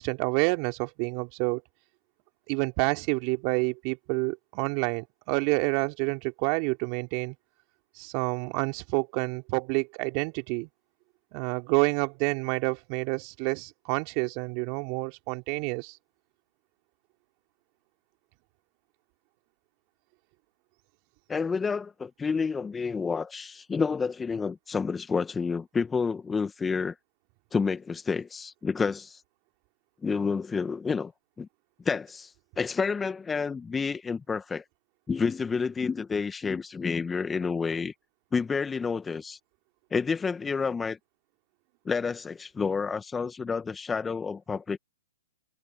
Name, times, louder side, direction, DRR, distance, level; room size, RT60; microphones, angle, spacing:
voice 1, 0.0-1.6 2.5-7.3 8.0-10.7 11.3-16.0, right 32 dB, 40° right, 3.3 m, -28 dB
voice 2, 21.3-27.0 27.5-29.2 30.0-31.1 31.4-31.5 31.9-34.6 35.1-37.9 38.3-39.4 39.9-41.0 41.9-44.8, left 5 dB, 10° left, 1.8 m, -29 dB
hypercardioid pair, 120°, 0 cm